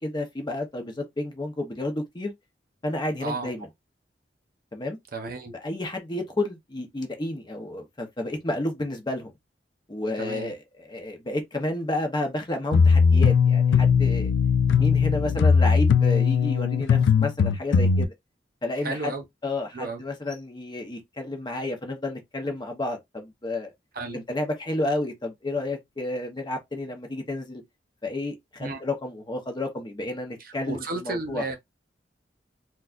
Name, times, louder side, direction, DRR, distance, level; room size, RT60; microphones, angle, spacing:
voice 1, 0.0-2.3 2.8-3.7 4.7-5.0 5.6-9.3 9.9-14.3 14.7-18.1 18.6-19.1 19.4-23.7 24.1-27.6 28.0-31.4, left 2 dB, 25° left, 0.8 m, -31 dB
voice 2, 3.2-3.5 5.1-5.5 10.2-10.5 18.8-19.2 19.7-20.0 23.9-24.2 28.6-28.8 30.4-31.6, right 3 dB, 55° right, 0.7 m, -33 dB
sound 1, 12.7-18.0, left 6 dB, 90° left, 0.3 m, -19 dB
4.0 x 2.2 x 2.4 m
head